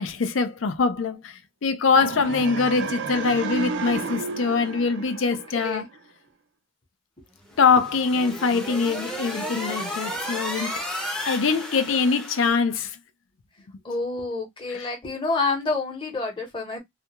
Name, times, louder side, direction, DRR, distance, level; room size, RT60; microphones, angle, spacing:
voice 1, 0.0-5.8 7.6-10.7 11.3-13.0 14.7-14.9, left 5 dB, 70° left, 0.5 m, -23 dB
sound 1, 1.9-6.0, right 4 dB, 60° right, 0.4 m, -32 dB
sound 2, 7.5-12.5, equal, 5° left, 0.6 m, -33 dB
voice 2, 13.8-16.8, left 3 dB, 25° left, 0.9 m, -28 dB
2.4 x 2.2 x 2.9 m
head